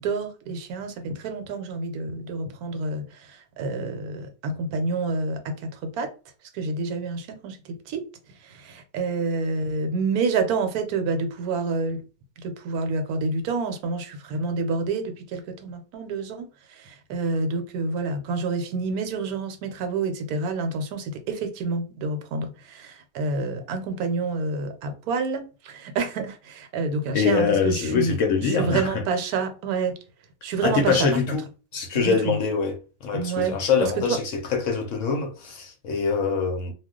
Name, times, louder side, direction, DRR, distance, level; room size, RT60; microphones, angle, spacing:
voice 1, 0.0-6.1 6.5-8.0 8.4-12.0 12.4-29.9 30.4-31.2 31.9-32.4 33.1-34.2, right 4 dB, 80° right, 1.1 m, -28 dB
voice 2, 27.1-29.0 30.6-31.4 31.7-32.7 33.0-34.2 34.5-36.7, left 5 dB, 65° left, 0.8 m, -24 dB
2.3 x 2.2 x 3.6 m
omnidirectional pair, 1.6 m